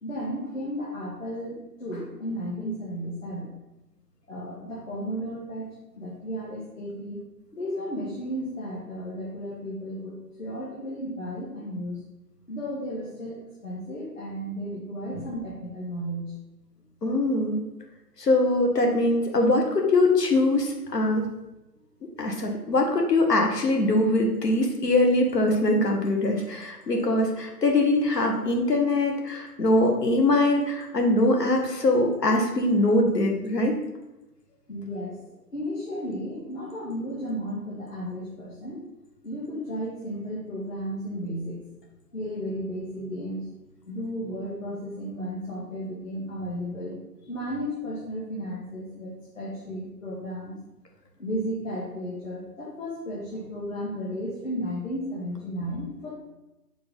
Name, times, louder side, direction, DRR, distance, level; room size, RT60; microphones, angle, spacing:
voice 1, 0.0-3.5 4.3-5.7 6.0-7.2 7.5-12.0 12.5-16.3 34.7-38.8 39.2-41.6 42.1-43.5 43.9-50.6 51.2-56.1, equal, 50° left, -6 dB, 2.2 m, -34 dB
voice 2, 17.0-17.6 18.2-21.2 22.2-33.8, left 2 dB, 75° left, 2 dB, 1.8 m, -22 dB
6.6 x 4.0 x 5.5 m, 0.99 s
hypercardioid pair, 180°, 48 cm